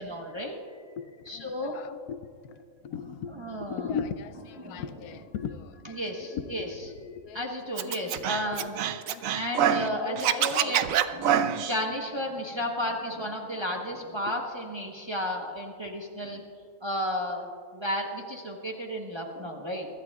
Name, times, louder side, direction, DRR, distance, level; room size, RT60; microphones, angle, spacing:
voice 1, 0.0-0.8 1.3-1.8 3.4-3.8 4.6-4.8 6.0-6.7 7.3-8.7 9.3-10.8 11.1-16.4 16.8-19.9, equal, 20° right, 0 dB, 1.0 m, -33 dB
voice 2, 1.0-7.4 7.8-9.2 9.9-11.0 14.2-14.4, left 7 dB, 80° left, 10 dB, 1.1 m, -39 dB
Scratching (performance technique), 7.8-9.9 10.2-11.8, right 9 dB, 70° right, 0.9 m, -25 dB
23.5 x 12.0 x 2.4 m, 2.1 s
omnidirectional pair, 1.5 m